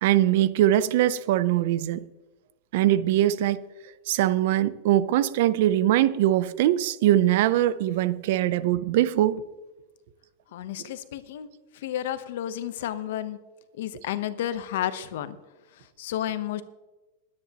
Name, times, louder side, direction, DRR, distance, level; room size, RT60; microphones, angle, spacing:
voice 1, 0.0-2.0 2.7-3.6 4.1-9.4, right 13 dB, 60° right, 0.6 m, -22 dB
voice 2, 10.5-11.5 11.8-13.4 13.8-15.4 16.0-16.6, left 11 dB, 70° left, 1.0 m, -31 dB
21.0 x 9.7 x 3.0 m
supercardioid pair, 160°, 0 cm